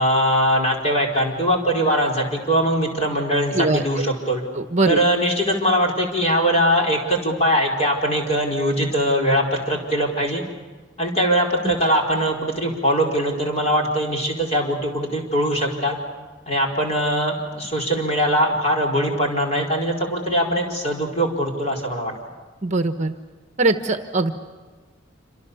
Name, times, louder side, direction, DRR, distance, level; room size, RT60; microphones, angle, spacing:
voice 1, 0.0-4.4 4.9-10.4 11.0-16.0 16.5-22.1, equal, 35° left, 0 dB, 4.9 m, -21 dB
voice 2, 4.5-5.0 11.6-11.7 22.6-23.1 23.6-24.3, right 2 dB, 35° right, 8 dB, 1.2 m, -21 dB
27.5 x 26.5 x 7.1 m, 1.4 s
head